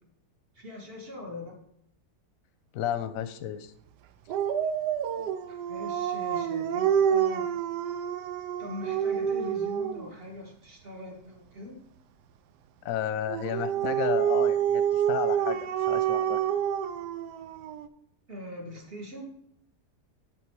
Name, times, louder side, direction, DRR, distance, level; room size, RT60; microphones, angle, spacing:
voice 1, 0.6-1.6 5.5-7.5 8.6-11.8 18.3-19.3, left 1 dB, 35° right, 1 dB, 1.8 m, -42 dB
voice 2, 2.7-3.7 12.8-16.4, left 10 dB, 65° left, 12 dB, 1.0 m, -32 dB
Dog, 4.3-10.1 13.3-17.9, right 9 dB, 85° right, 1.2 m, -28 dB
12.0 x 4.0 x 4.7 m, 0.70 s
omnidirectional pair, 1.7 m